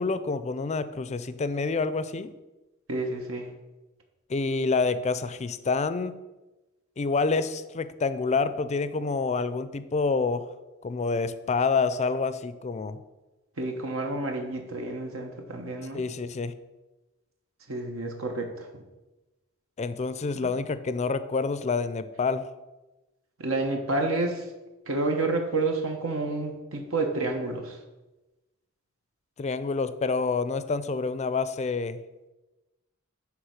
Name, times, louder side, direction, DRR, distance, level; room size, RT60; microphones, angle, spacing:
voice 1, 0.0-2.3 4.3-6.1 7.0-10.4 10.8-13.0 15.9-16.5 19.8-22.4 29.4-32.0, left 4 dB, 35° left, 13 dB, 0.4 m, -27 dB
voice 2, 2.9-3.5 13.6-16.0 17.7-18.7 20.4-20.5 23.4-24.4 24.9-27.8, right 2 dB, 75° right, 3 dB, 1.1 m, -29 dB
9.6 x 3.5 x 6.5 m, 1.1 s
head